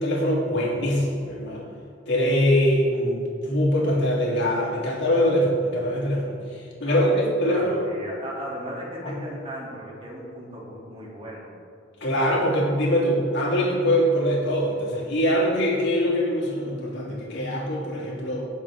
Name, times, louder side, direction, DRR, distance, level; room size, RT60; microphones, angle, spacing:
voice 1, 0.0-1.6 2.1-7.8 9.0-9.1 12.0-18.5, equal, 65° left, -4 dB, 2.9 m, -23 dB
voice 2, 6.9-11.5, equal, 30° right, -5 dB, 2.9 m, -36 dB
18.0 x 7.3 x 3.8 m, 2.3 s
head